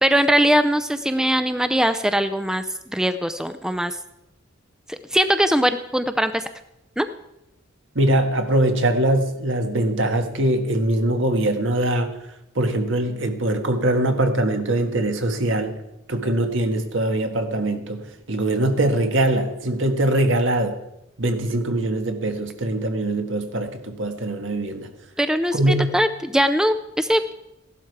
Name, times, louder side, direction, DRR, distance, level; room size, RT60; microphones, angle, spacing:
voice 1, 0.0-4.0 4.9-6.5 7.0-7.1 25.2-27.3, equal, 5° right, 10 dB, 0.4 m, -21 dB
voice 2, 7.9-12.2 12.5-15.8 16.1-20.8 21.2-24.9 25.5-25.9, right 1 dB, 65° right, 6 dB, 1.6 m, -22 dB
15.5 x 12.0 x 4.7 m, 0.88 s
head